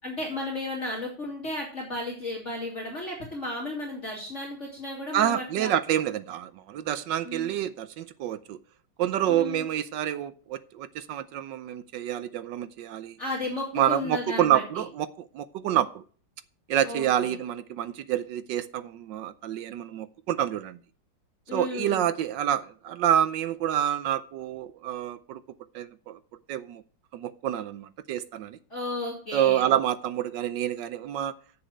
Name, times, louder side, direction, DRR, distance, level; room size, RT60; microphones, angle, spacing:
voice 1, 0.0-5.7 7.2-7.5 9.3-9.7 13.2-14.8 16.8-17.4 21.5-22.0 28.7-29.7, left 2 dB, 35° left, -3 dB, 2.8 m, -34 dB
voice 2, 5.1-8.6 9.0-13.2 13.7-15.1 15.3-16.0 16.7-20.8 21.5-25.4 25.7-26.2 26.5-26.8 27.1-28.6 29.3-31.3, right 11 dB, 70° right, 14 dB, 1.1 m, -28 dB
7.5 x 7.0 x 7.8 m, 0.42 s
omnidirectional pair, 2.3 m